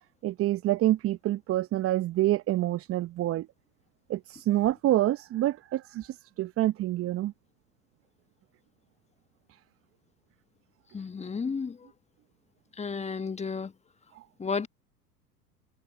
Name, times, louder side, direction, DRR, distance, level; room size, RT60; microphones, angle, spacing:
voice 1, 0.2-3.5 4.1-7.3 14.1-14.2, right 14 dB, 30° right, 0.9 m, -27 dB
voice 2, 10.9-11.8 12.8-13.7 14.4-14.7, left 5 dB, 15° left, 1.4 m, -32 dB
hypercardioid pair, 85°, 46 cm